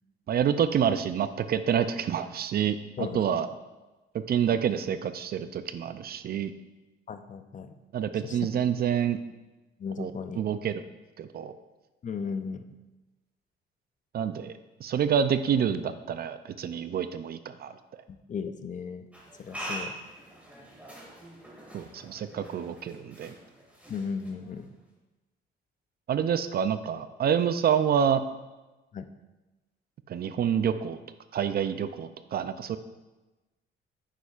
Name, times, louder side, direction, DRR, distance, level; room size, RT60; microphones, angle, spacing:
voice 1, 0.3-3.5 4.1-6.5 7.9-9.2 10.0-10.8 11.2-11.5 14.1-14.5 14.8-17.7 21.7-23.3 26.1-28.2 30.1-31.0 31.3-32.8, right 8 dB, 50° right, 12 dB, 0.4 m, -27 dB
voice 2, 3.0-3.4 7.1-7.7 8.2-8.4 9.8-10.4 12.0-12.6 18.1-19.1 19.4-19.9 23.9-24.7 28.9-29.1, left 5 dB, 40° left, 9 dB, 0.6 m, -36 dB
sound 1, 19.1-24.8, right 1 dB, 5° right, 2.2 m, -43 dB
9.0 x 6.8 x 2.4 m, 1.1 s
cardioid pair, 90°, 20 cm